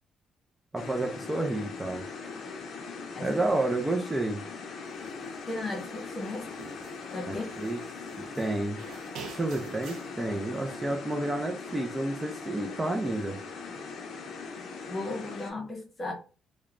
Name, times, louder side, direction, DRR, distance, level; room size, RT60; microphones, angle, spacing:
voice 1, 0.7-2.0 3.2-4.4 7.3-7.8 8.2-8.8 9.3-13.4, right 2 dB, 20° right, 0.4 m, -30 dB
sound 1, 0.8-15.5, left 4 dB, 65° left, 0.5 m, -40 dB
sound 2, 5.0-5.3 5.7-7.0 7.3-8.5 8.8-10.1, right 6 dB, 85° right, 0.4 m, -46 dB
voice 2, 5.5-6.6 7.1-7.4 14.9-16.1, left 2 dB, 30° left, 0.9 m, -36 dB
3.0 x 2.1 x 2.4 m
cardioid pair, 90°, 0 cm